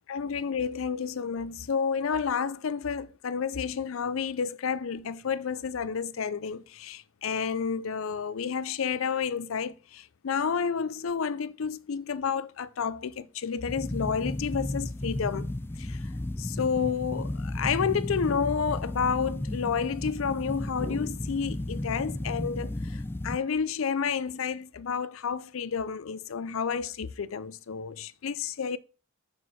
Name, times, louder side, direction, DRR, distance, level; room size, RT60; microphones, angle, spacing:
voice 1, 0.1-15.5 15.8-16.1 16.4-28.8, left 6 dB, 75° left, 0.5 m, -30 dB
sound 1, 13.7-23.4, left 1 dB, 10° left, 0.4 m, -34 dB
6.3 x 4.6 x 5.6 m
head